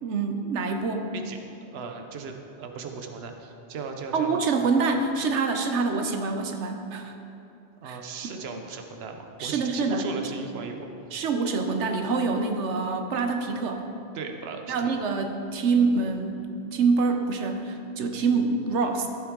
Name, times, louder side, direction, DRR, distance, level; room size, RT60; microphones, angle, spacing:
voice 1, 0.0-1.1 4.1-7.1 7.8-8.0 9.4-10.1 11.1-13.8 14.7-16.4 16.7-19.1, right 4 dB, 90° right, 5 dB, 1.1 m, -26 dB
voice 2, 1.1-4.3 7.8-10.9 14.1-14.9, right 5 dB, 65° right, 4 dB, 1.0 m, -37 dB
14.5 x 7.8 x 3.7 m, 2.8 s
omnidirectional pair, 1.1 m